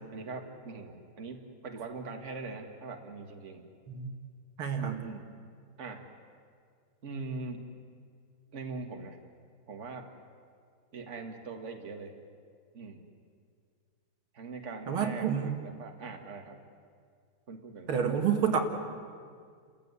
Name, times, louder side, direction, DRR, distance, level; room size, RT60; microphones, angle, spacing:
voice 1, 0.1-3.6 4.8-5.3 5.8-6.0 7.0-7.6 8.5-9.2 9.7-10.1 10.9-12.1 12.7-13.0 14.3-16.6 17.5-17.9, right 3 dB, 35° right, 4 dB, 2.2 m, -42 dB
voice 2, 4.6-5.0 14.9-15.5 17.9-18.6, right 7 dB, 85° right, 4 dB, 2.8 m, -28 dB
30.0 x 15.0 x 9.7 m, 2.1 s
omnidirectional pair, 2.3 m